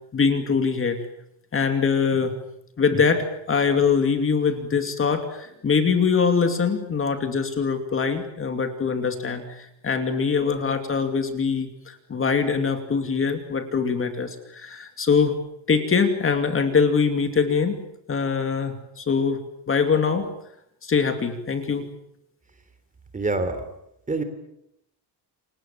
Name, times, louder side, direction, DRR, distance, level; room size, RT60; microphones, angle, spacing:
voice 1, 0.1-1.0 1.5-2.3 2.8-15.3 15.7-19.4 19.7-20.3 20.8-21.9, left 5 dB, 30° left, 7 dB, 2.6 m, -23 dB
voice 2, 23.1-23.6 24.1-24.2, right 3 dB, 20° right, 9 dB, 3.3 m, -25 dB
29.5 x 25.0 x 7.4 m, 0.78 s
cardioid pair, 165°, 42 cm